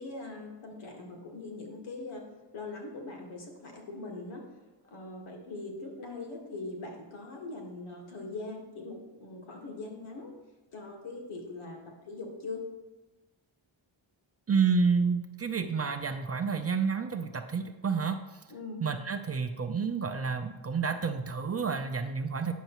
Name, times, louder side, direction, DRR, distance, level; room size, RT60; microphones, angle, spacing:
voice 1, 0.0-2.2 2.5-4.4 4.8-10.4 10.7-11.8 12.0-12.6 18.5-18.8, left 3 dB, 80° left, 0 dB, 1.7 m, -41 dB
voice 2, 14.5-18.2 18.8-22.5, right 5 dB, 30° right, 6 dB, 0.5 m, -29 dB
9.1 x 6.4 x 3.0 m, 1.1 s
wide cardioid pair, 100°, 48 cm